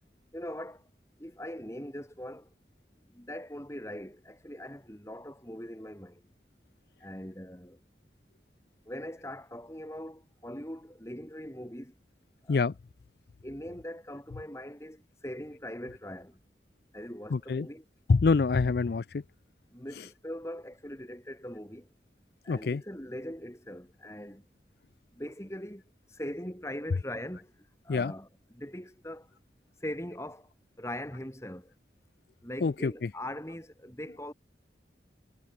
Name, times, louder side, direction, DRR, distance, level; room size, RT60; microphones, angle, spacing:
voice 1, 0.3-0.9 1.2-2.5 3.1-6.3 7.0-7.8 8.9-11.9 12.4-12.7 13.4-16.4 16.9-17.8 19.7-21.9 22.4-24.4 25.1-25.8 26.1-27.5 27.8-29.3 29.8-30.5 30.8-31.7 32.4-34.3, left 1 dB, 15° left, 5.5 m, -41 dB
voice 2, 17.3-17.7 18.1-19.2 22.5-22.8 27.9-28.1 32.6-33.1, left 4 dB, 55° left, 0.4 m, -26 dB
head